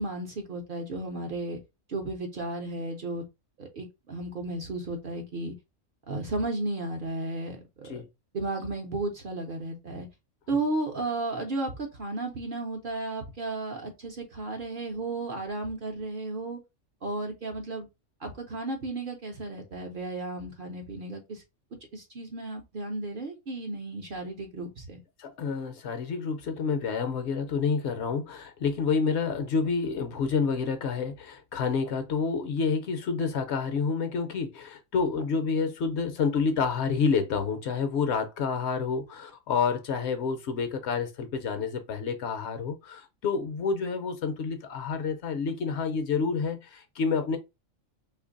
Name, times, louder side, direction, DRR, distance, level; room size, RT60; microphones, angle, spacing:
voice 1, 0.0-1.6 1.9-3.3 3.6-5.5 6.1-8.0 8.3-10.1 10.5-16.6 17.0-17.9 18.2-21.4 21.9-25.0, right 2 dB, 55° right, 0.7 m, -34 dB
voice 2, 25.2-47.4, left 5 dB, 65° left, 0.8 m, -29 dB
2.8 x 2.5 x 3.7 m
omnidirectional pair, 1.3 m